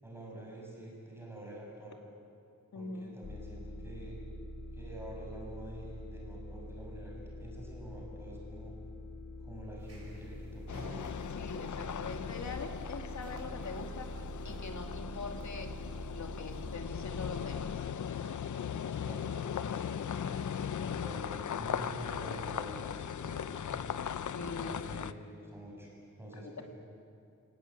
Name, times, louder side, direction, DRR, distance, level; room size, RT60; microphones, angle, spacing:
voice 1, 0.0-2.0 2.7-4.2 4.7-8.7 9.4-11.1 18.9-20.4 20.9-23.8 24.6-25.9 26.2-26.6, right 1 dB, 10° right, -3 dB, 6.6 m, -47 dB
voice 2, 2.7-3.1 11.3-14.1 14.4-15.7 16.1-17.9 18.2-18.3 24.3-24.9, left 3 dB, 70° left, 4 dB, 2.6 m, -43 dB
sound 1, 3.2-17.7, equal, 50° left, 3.0 m, -45 dB
sound 2, 9.8-16.8, right 2 dB, 55° right, 5.7 m, -55 dB
sound 3, 10.7-25.1, left 8 dB, 85° left, 0.7 m, -38 dB
29.5 x 18.5 x 9.1 m, 2.5 s
wide cardioid pair, 150°, 29 cm